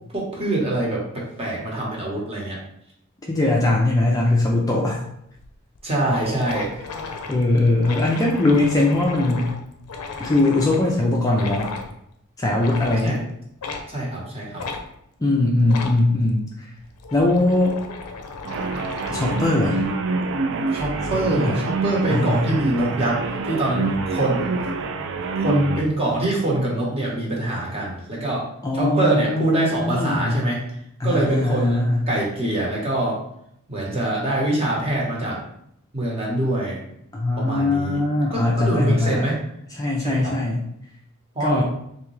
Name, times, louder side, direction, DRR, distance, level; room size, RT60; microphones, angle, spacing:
voice 1, 0.1-2.6 5.8-6.8 7.8-7.9 13.0-13.2 13.9-14.7 20.7-24.7 25.4-28.5 28.7-30.6 31.0-33.2 33.7-35.4 35.9-36.8 37.4-38.0 38.3-39.4 40.0-40.3 41.3-41.6, right 1 dB, 25° right, -3 dB, 1.0 m, -24 dB
voice 2, 3.3-5.0 7.3-9.5 10.2-11.8 12.4-13.2 15.2-16.4 17.1-17.8 19.1-19.8 21.3-21.6 22.1-22.5 28.6-30.4 31.0-32.1 37.1-39.2 39.8-40.6 41.4-41.6, left 2 dB, 15° left, -3 dB, 0.4 m, -20 dB
sound 1, 5.4-5.5 5.8-5.9 6.0-10.9 11.3-11.9 12.5-13.1 13.6-13.9 14.6-14.8 15.6-16.0 16.8-19.5, left 4 dB, 90° left, 0.5 m, -34 dB
sound 2, 18.4-25.9, right 3 dB, 60° right, 0.3 m, -26 dB
3.5 x 2.7 x 3.1 m, 0.74 s
head